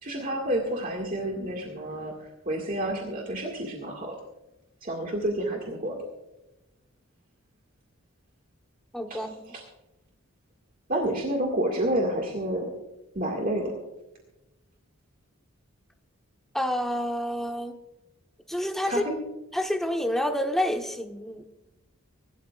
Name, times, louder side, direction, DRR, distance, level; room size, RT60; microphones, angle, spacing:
voice 1, 0.0-4.2 4.8-6.0 9.1-9.6 10.9-12.7 13.2-13.8 18.9-19.2, right 1 dB, 40° right, 0 dB, 1.9 m, -29 dB
voice 2, 8.9-9.5 16.5-17.7 18.5-19.0 19.5-21.4, equal, ahead, 4 dB, 1.0 m, -28 dB
25.0 x 12.5 x 2.4 m, 0.99 s
head